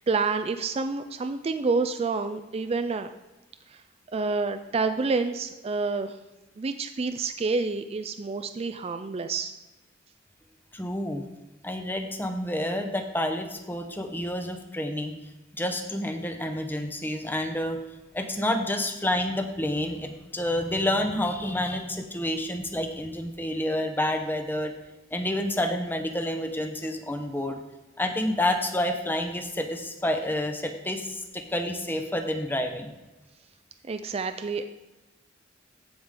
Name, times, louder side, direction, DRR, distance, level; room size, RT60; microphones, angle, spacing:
voice 1, 0.0-3.1 4.1-6.2 6.6-9.5 33.9-34.6, right 4 dB, 30° right, 8 dB, 0.4 m, -28 dB
voice 2, 10.7-11.2 11.6-15.2 15.5-17.8 18.1-24.7 25.1-27.6 28.0-32.9, left 1 dB, 10° left, 5 dB, 0.9 m, -29 dB
15.0 x 5.1 x 3.8 m, 1.1 s
head